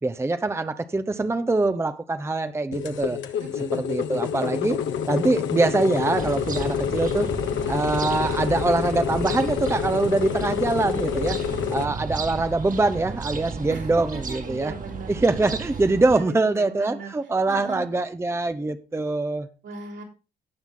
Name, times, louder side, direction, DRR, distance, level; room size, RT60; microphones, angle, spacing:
voice 1, 0.0-3.2 3.7-4.8 5.1-7.3 7.6-11.4 11.7-14.7 15.1-19.5, right 2 dB, 15° right, 0.7 m, -24 dB
sound 1, 2.7-11.8, left 8 dB, 70° left, 1.1 m, -28 dB
voice 2, 3.4-4.1 11.8-11.9 13.7-15.5 16.0-17.1 17.5-17.8 19.6-20.0, right 4 dB, 70° right, 3.6 m, -38 dB
sound 2, 6.2-16.2, right 4 dB, 40° right, 1.7 m, -34 dB
17.5 x 5.8 x 3.7 m
cardioid pair, 90°, 20 cm